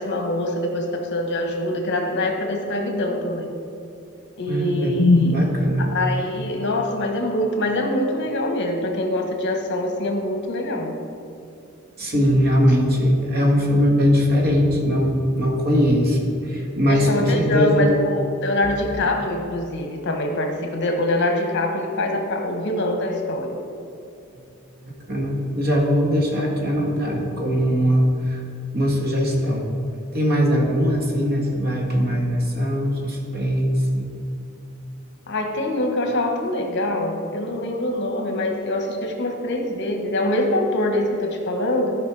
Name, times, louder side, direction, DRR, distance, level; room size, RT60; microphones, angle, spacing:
voice 1, 0.0-3.5 4.4-10.9 16.9-23.6 35.3-42.0, left 1 dB, 55° left, 3 dB, 1.2 m, -24 dB
voice 2, 4.5-6.0 12.0-17.9 25.0-28.4 28.7-29.7 30.1-34.1, equal, 45° right, 0 dB, 1.5 m, -20 dB
13.5 x 5.3 x 4.7 m, 2.6 s
head